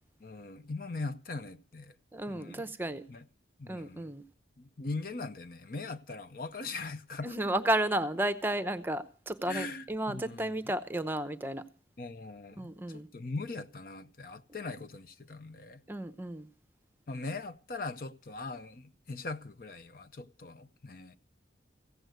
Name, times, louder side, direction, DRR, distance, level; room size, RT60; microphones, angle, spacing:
voice 1, 0.2-2.0 2.3-2.7 3.1-3.3 3.6-4.1 4.6-7.4 9.5-10.4 12.0-15.8 17.1-21.2, left 3 dB, 50° left, 0.7 m, -40 dB
voice 2, 2.1-3.0 3.7-4.2 7.2-11.6 12.6-13.1 15.9-16.5, right 1 dB, 10° right, 0.7 m, -33 dB
16.0 x 7.9 x 9.2 m
head